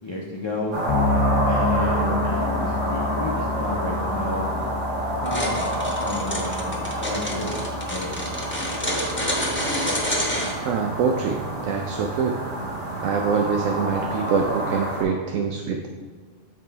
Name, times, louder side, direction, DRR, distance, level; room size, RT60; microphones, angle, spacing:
voice 1, 0.0-0.8 1.5-4.5 5.2-7.6 7.9-8.2, left 2 dB, 30° left, -1 dB, 0.5 m, -31 dB
sound 1, 0.7-15.0, right 1 dB, 40° right, 1.4 m, -28 dB
Bass guitar, 0.9-10.5, left 3 dB, 90° left, 1.1 m, -30 dB
sound 2, 5.3-10.5, equal, 10° left, 0.9 m, -28 dB
voice 2, 10.6-12.4 13.0-15.9, right 5 dB, 85° right, 4 dB, 1.0 m, -24 dB
7.5 x 4.0 x 4.6 m, 1.5 s
omnidirectional pair, 1.3 m